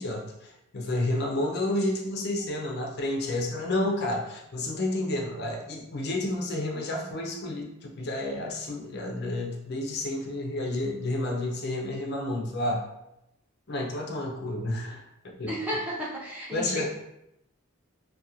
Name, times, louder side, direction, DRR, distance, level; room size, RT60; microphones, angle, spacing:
voice 1, 0.0-12.8 13.7-15.0 15.4-15.5 16.5-16.9, left 1 dB, 45° left, 0 dB, 0.4 m, -30 dB
voice 2, 15.5-16.9, equal, 5° right, -7 dB, 0.5 m, -32 dB
2.4 x 2.2 x 2.8 m, 0.86 s
head